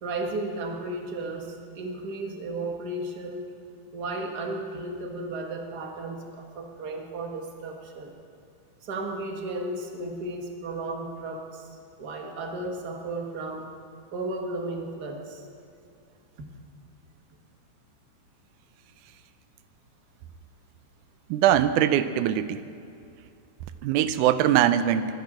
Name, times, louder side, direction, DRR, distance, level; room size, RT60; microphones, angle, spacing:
voice 1, 0.0-3.5 3.9-8.1 8.8-11.7 12.0-13.7 14.1-15.4 16.4-16.5, right 2 dB, 40° right, 2 dB, 1.6 m, -34 dB
voice 2, 21.3-22.6 23.8-25.1, right 11 dB, 85° right, 12 dB, 2.1 m, -22 dB
23.5 x 10.5 x 5.0 m, 2.5 s
omnidirectional pair, 3.5 m